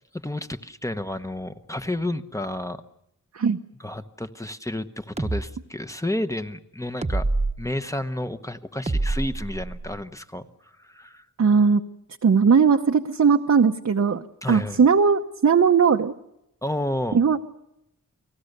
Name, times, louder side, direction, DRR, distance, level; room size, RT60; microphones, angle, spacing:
voice 1, 0.1-2.8 3.8-7.3 7.6-10.5 10.8-11.3 14.4-14.8 16.6-17.2, left 1 dB, 10° left, 9 dB, 1.0 m, -31 dB
sound 1, 5.2-5.4 7.0-7.5 8.9-10.0, right 2 dB, 20° right, 1.1 m, -26 dB
voice 2, 11.4-11.8 12.2-16.1 17.1-17.4, right 6 dB, 55° right, 4 dB, 0.9 m, -19 dB
30.0 x 19.0 x 6.7 m, 0.84 s
wide cardioid pair, 120°, 33 cm